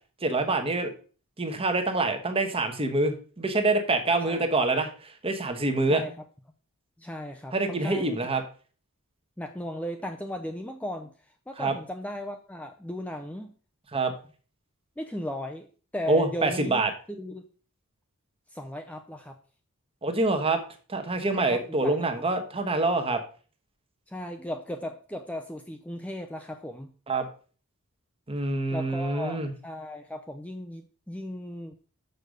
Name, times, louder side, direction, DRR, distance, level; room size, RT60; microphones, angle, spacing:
voice 1, 0.2-0.9 1.4-6.0 7.5-8.4 11.6-11.7 13.9-14.1 16.1-16.9 20.0-20.6 20.9-23.2 27.1-27.3 28.3-29.5, right 2 dB, 25° right, 6 dB, 1.2 m, -26 dB
voice 2, 7.0-8.2 9.4-11.1 11.5-13.5 15.0-15.7 15.9-16.8 17.1-17.5 18.5-19.4 21.3-22.1 24.1-26.9 28.7-31.8, left 1 dB, 5° left, 4 dB, 0.5 m, -36 dB
6.7 x 5.1 x 6.4 m, 0.39 s
head